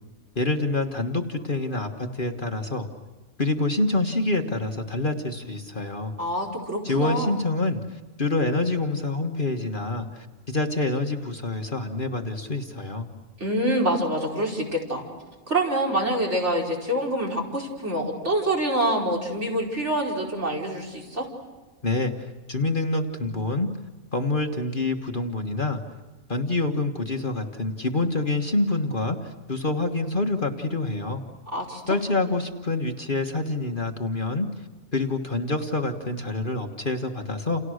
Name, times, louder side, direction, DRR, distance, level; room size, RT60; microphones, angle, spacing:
voice 1, 0.3-2.9 3.4-6.1 6.8-13.1 21.8-23.7 24.1-25.8 26.3-31.2 31.9-34.7 34.9-37.6, left 2 dB, 35° left, 4 dB, 1.6 m, -27 dB
voice 2, 6.2-7.4 13.4-15.0 15.5-21.3 31.5-32.0, right 1 dB, 50° right, 1 dB, 5.3 m, -26 dB
29.5 x 29.5 x 6.5 m, 1.3 s
omnidirectional pair, 1.5 m